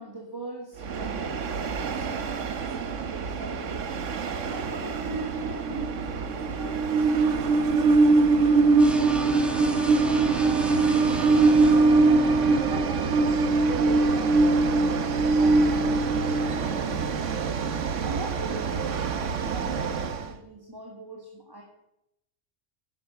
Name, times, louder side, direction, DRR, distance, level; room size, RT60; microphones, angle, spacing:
voice 1, 0.0-3.9 4.5-7.5 8.3-12.0 12.7-17.1 18.0-21.6, right 1 dB, 20° right, -1 dB, 1.9 m, -42 dB
Train, 0.8-20.3, right 3 dB, 90° right, 1.3 m, -23 dB
sound 1, 8.8-12.7, right 1 dB, ahead, 1.3 m, -33 dB
11.0 x 10.5 x 6.7 m, 0.84 s
omnidirectional pair, 1.2 m